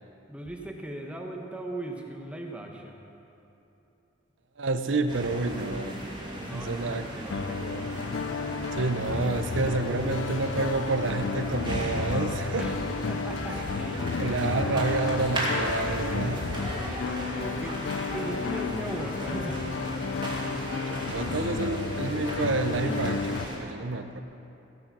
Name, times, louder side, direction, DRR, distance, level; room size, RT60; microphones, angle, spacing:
voice 1, 0.3-3.0 6.4-8.0 12.5-14.9 16.7-17.8 18.1-19.6 22.8-23.2, right 1 dB, 5° right, 1 dB, 1.2 m, -39 dB
voice 2, 4.6-6.0 6.5-7.5 8.8-12.7 13.5-13.6 14.2-16.5 20.9-23.2 23.5-24.2, right 3 dB, 85° right, 9 dB, 0.8 m, -29 dB
sound 1, 5.1-23.6, equal, 25° right, 2.4 m, -36 dB
sound 2, 7.3-23.5, left 5 dB, 80° left, 0.4 m, -33 dB
15.5 x 8.7 x 6.0 m, 2.9 s
head